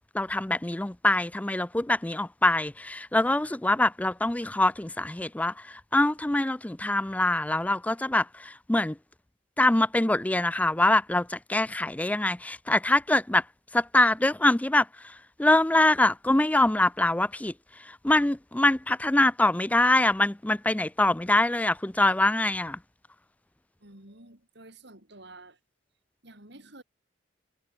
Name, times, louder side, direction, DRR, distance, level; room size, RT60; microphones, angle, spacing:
voice 1, 0.1-9.0 9.6-13.4 13.7-17.5 17.8-22.8, left 2 dB, 5° left, 0.4 m, -24 dB
voice 2, 23.8-25.6 26.2-26.8, right 2 dB, 60° right, 5.5 m, -50 dB
head